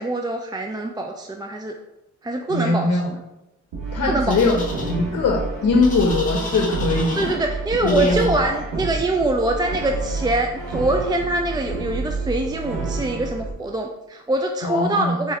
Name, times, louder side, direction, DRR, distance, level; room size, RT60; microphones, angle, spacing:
voice 1, 0.0-1.7 2.2-3.2 4.1-4.4 7.1-15.3, right 2 dB, 15° right, 3 dB, 0.4 m, -24 dB
voice 2, 2.5-3.1 3.9-7.3 7.8-8.3 14.6-15.1, left 3 dB, 60° left, 1 dB, 0.8 m, -21 dB
Brass instrument, 3.7-13.5, right 3 dB, 90° right, 1.3 m, -29 dB
sound 1, 4.3-4.9 5.8-7.3 7.9-8.3, left 2 dB, 25° left, 1.3 m, -33 dB
4.2 x 3.3 x 3.6 m, 0.94 s
supercardioid pair, 60°, 31 cm